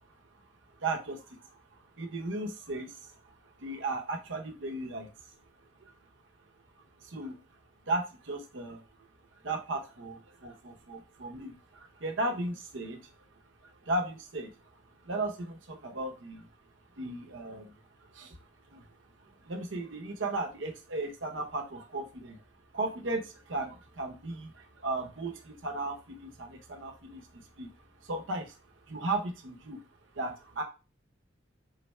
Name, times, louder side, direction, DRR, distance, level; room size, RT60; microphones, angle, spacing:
voice 1, 0.8-1.6 2.0-3.2 3.6-5.1 7.0-7.4 7.9-8.8 9.4-13.1 13.8-14.6 15.0-16.5 17.0-17.8 18.1-18.4 18.7-18.9 19.4-22.4 22.7-27.7 28.0-28.6 28.9-29.8 30.1-30.6, right 2 dB, 80° right, 4 dB, 0.8 m, -36 dB
3.9 x 2.3 x 4.1 m, 0.31 s
head